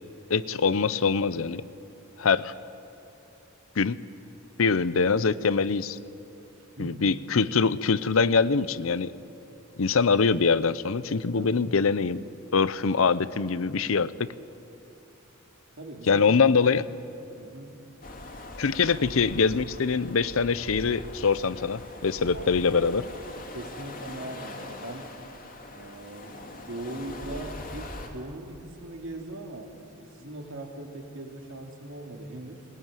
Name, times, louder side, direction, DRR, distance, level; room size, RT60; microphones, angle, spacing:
voice 1, 0.3-1.6 2.2-2.5 3.8-4.0 4.6-6.0 6.8-9.1 9.8-12.2 12.5-14.3 16.1-16.8 18.6-23.1, left 5 dB, 75° left, 17 dB, 0.7 m, -24 dB
voice 2, 15.8-16.3 17.4-17.8 22.3-22.5 23.5-25.2 25.7-29.7 30.0-32.7, right 1 dB, 65° right, 3 dB, 2.9 m, -40 dB
sound 1, 18.0-28.1, left 2 dB, 45° left, 2.6 m, -42 dB
20.5 x 19.5 x 9.1 m, 2.9 s
head